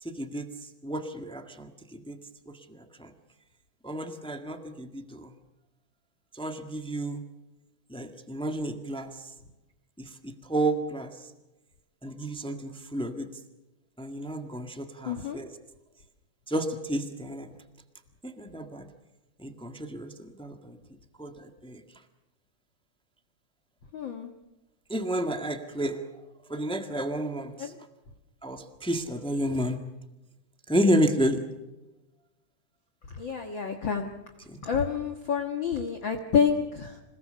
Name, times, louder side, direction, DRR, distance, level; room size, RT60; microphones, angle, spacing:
voice 1, 0.0-0.5 0.8-2.2 2.5-3.1 3.8-5.3 6.3-7.2 7.9-9.3 10.0-11.3 12.0-13.3 14.0-15.5 16.5-17.5 18.2-18.9 19.4-20.8 21.2-21.8 24.9-26.1 26.5-27.7 28.4-29.8 30.7-31.5 34.4-34.6, right 1 dB, 5° left, 6 dB, 0.5 m, -31 dB
voice 2, 15.1-15.4 23.9-24.3 27.6-27.8 33.1-34.1 34.6-37.0, left 7 dB, 45° left, 4 dB, 1.8 m, -28 dB
27.0 x 19.5 x 6.9 m, 1.0 s
omnidirectional pair, 3.6 m